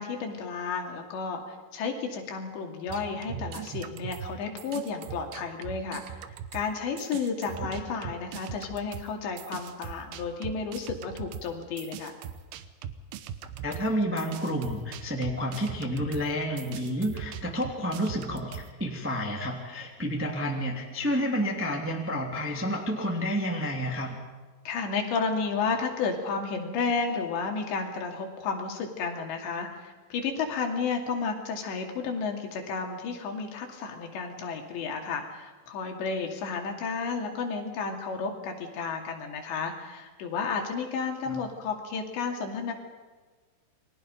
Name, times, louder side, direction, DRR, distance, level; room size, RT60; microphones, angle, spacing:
voice 1, 0.0-6.2 6.5-12.1 24.7-42.7, left 5 dB, 65° left, 2 dB, 4.5 m, -32 dB
sound 1, 2.9-6.7 7.0-18.7, right 9 dB, 90° right, 2.2 m, -40 dB
voice 2, 13.6-24.2 41.3-41.4, equal, 5° right, 0 dB, 1.4 m, -30 dB
29.5 x 23.0 x 5.3 m, 1.4 s
omnidirectional pair, 5.9 m